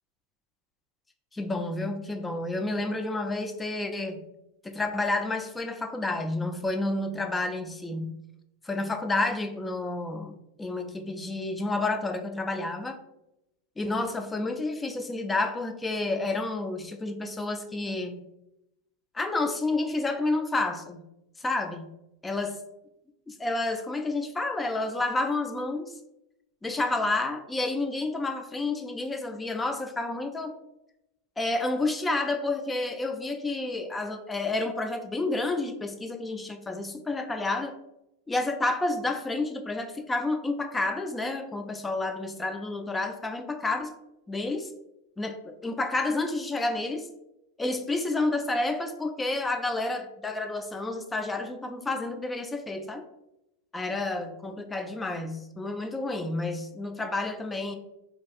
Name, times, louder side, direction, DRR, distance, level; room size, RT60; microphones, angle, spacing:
voice 1, 1.3-4.2 4.6-8.2 8.6-13.0 13.8-18.2 19.1-21.0 21.4-21.9 22.2-22.6 23.3-25.9 26.6-30.5 31.4-37.7 38.3-43.9 44.3-44.7 45.2-47.1 47.6-53.1 53.7-57.8, left 2 dB, 15° left, 6 dB, 0.3 m, -30 dB
2.6 x 2.3 x 2.4 m, 0.88 s
hypercardioid pair, 95°, 0 cm